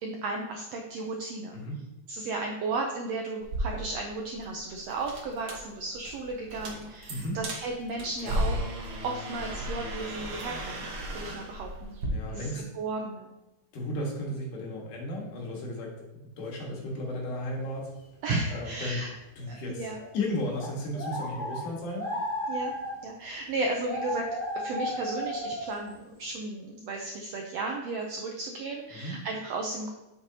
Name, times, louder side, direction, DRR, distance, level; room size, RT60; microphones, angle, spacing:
voice 1, 0.0-1.6 2.1-8.6 9.0-10.9 11.1-11.9 12.3-13.3 18.2-19.1 19.5-20.0 22.5-22.7 23.0-24.3 24.5-29.9, right 3 dB, 80° right, 1 dB, 1.5 m, -34 dB
sound 1, 3.4-12.1, right 1 dB, 65° right, 1.0 m, -36 dB
voice 2, 8.2-8.7 12.1-12.6 13.7-15.9 16.4-17.9 18.5-19.0 19.4-19.9 20.1-22.1 28.9-29.2, left 1 dB, 75° left, -2 dB, 3.0 m, -34 dB
sound 2, 19.4-19.5 20.0-20.1 20.5-21.7 21.9-23.1 23.8-25.7, equal, 10° left, 0.7 m, -34 dB
8.2 x 6.5 x 2.8 m, 0.98 s
omnidirectional pair, 3.7 m